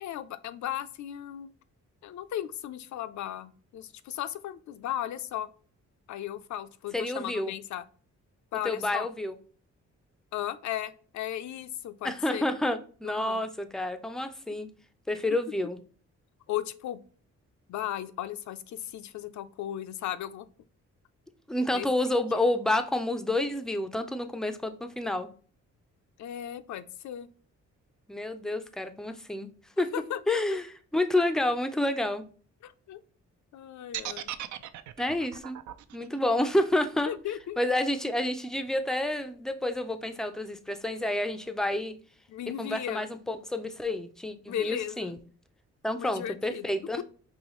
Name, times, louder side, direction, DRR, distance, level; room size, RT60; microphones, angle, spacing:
voice 1, 0.0-1.5 2.0-5.5 6.1-7.9 8.5-9.1 10.3-12.4 13.0-13.4 16.5-17.0 17.7-20.5 21.7-21.9 26.2-27.3 29.9-30.6 31.2-31.3 32.6-33.0 33.5-34.3 37.1-37.6 42.3-43.1 44.5-45.2 45.9-46.7 47.0-47.1, left 11 dB, 75° left, 11 dB, 0.5 m, -36 dB
voice 2, 6.9-7.5 8.6-9.3 12.0-14.7 15.1-15.8 21.5-25.3 28.1-29.5 29.8-29.9 30.3-30.7 30.9-32.2 35.0-35.6 35.9-37.1 37.6-41.9 42.6-45.2 45.8-47.0, left 1 dB, ahead, 9 dB, 0.4 m, -29 dB
sound 1, 33.9-38.0, right 11 dB, 75° right, 0.5 m, -39 dB
5.5 x 3.0 x 3.0 m, 0.42 s
cardioid pair, 135°, 29 cm